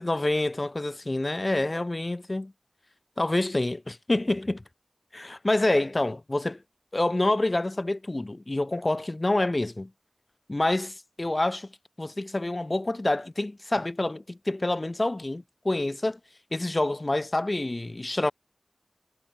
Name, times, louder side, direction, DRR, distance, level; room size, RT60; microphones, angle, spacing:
voice 1, 0.0-2.5 3.2-4.6 5.1-6.6 6.9-9.9 10.5-11.7 12.0-16.2 16.5-18.3, left 2 dB, 45° left, 6.8 m, -27 dB
wide cardioid pair, 55°, 0 cm